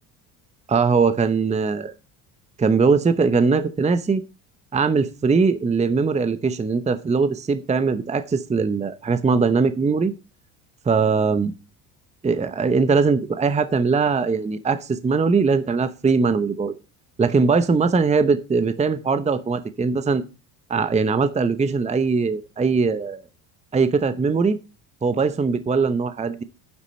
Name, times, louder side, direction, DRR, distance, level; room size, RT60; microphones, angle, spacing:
voice 1, 0.7-1.9 2.6-4.2 4.7-10.1 10.9-11.5 12.2-16.7 17.2-20.2 20.7-23.2 23.7-24.6 25.0-26.4, right 4 dB, 15° right, 12 dB, 0.8 m, -21 dB
9.8 x 8.1 x 4.3 m, 0.31 s
supercardioid pair, 90°, 41 cm